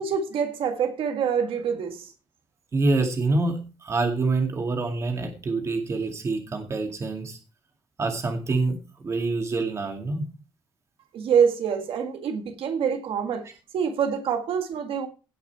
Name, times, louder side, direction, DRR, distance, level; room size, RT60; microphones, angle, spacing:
voice 1, 0.0-2.1 11.1-13.5 13.7-15.1, right 7 dB, 80° right, 1.8 m, -25 dB
voice 2, 2.7-7.4 8.0-10.3, right 3 dB, 30° right, 2.2 m, -26 dB
17.0 x 5.8 x 4.6 m
wide cardioid pair, 170°, 9 cm